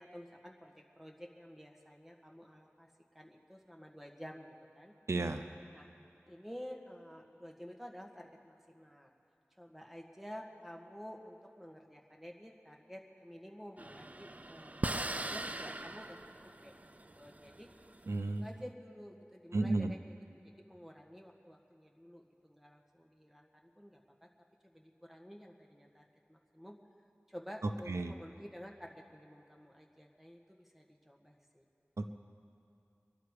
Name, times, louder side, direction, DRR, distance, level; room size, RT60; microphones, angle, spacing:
voice 1, 0.0-4.9 5.7-5.9 6.3-9.1 9.6-16.2 16.6-16.7 17.1-17.7 18.4-24.3 24.6-26.8 27.3-31.7, equal, 5° right, 0 dB, 1.6 m, -51 dB
voice 2, 5.1-5.4 18.1-18.4 19.5-19.9 27.9-28.1 32.0-32.1, right 2 dB, 85° right, 7 dB, 0.6 m, -33 dB
sound 1, 13.8-18.4, right 1 dB, 30° right, 0.5 m, -41 dB
23.5 x 11.5 x 4.9 m, 2.7 s
wide cardioid pair, 45°, 5 cm